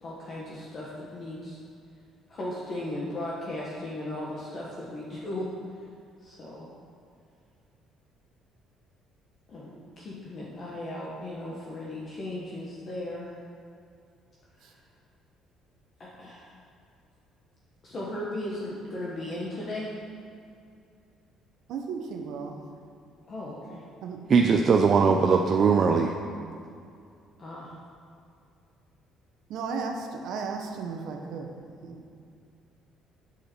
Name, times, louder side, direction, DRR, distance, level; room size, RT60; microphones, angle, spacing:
voice 1, 0.0-1.6 2.3-5.5 6.2-6.7 9.5-13.4 14.6-14.7 16.0-16.6 17.8-19.9 23.3-23.8 27.4-27.8, left 1 dB, 35° left, -5 dB, 1.1 m, -36 dB
voice 2, 21.7-22.6 24.0-24.6 29.5-31.5 31.8-32.0, right 5 dB, 65° right, 4 dB, 0.9 m, -35 dB
voice 3, 24.3-26.1, right 5 dB, 40° right, 2 dB, 0.4 m, -20 dB
8.3 x 6.7 x 4.4 m, 2.4 s
cardioid pair, 150°, 0 cm